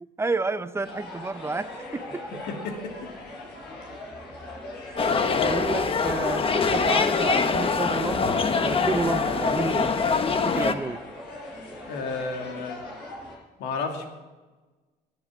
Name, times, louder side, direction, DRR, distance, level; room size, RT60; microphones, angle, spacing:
voice 1, 0.2-2.3 4.9-5.0 5.4-10.0 10.4-11.0, right 3 dB, 15° right, 13 dB, 0.7 m, -30 dB
sound 1, 0.8-13.4, left 1 dB, 70° left, 6.3 m, -40 dB
voice 2, 2.5-3.0 4.9-5.5 11.8-12.8 13.6-14.1, left 4 dB, 85° left, 4 dB, 2.5 m, -33 dB
sound 2, 5.0-10.7, left 4 dB, 35° left, 1.1 m, -24 dB
17.5 x 9.6 x 6.3 m, 1.3 s
cardioid pair, 110°, 17 cm